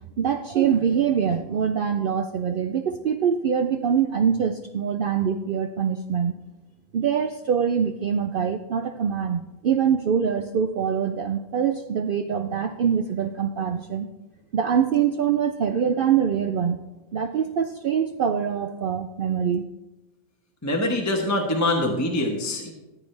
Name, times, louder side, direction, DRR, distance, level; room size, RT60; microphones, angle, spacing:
voice 1, 0.2-6.3 6.9-14.1 14.5-16.8 17.1-19.6, right 7 dB, 75° right, 7 dB, 0.5 m, -24 dB
voice 2, 20.6-22.7, left 1 dB, 15° left, 1 dB, 1.0 m, -24 dB
14.5 x 8.7 x 3.3 m, 1.0 s
omnidirectional pair, 1.5 m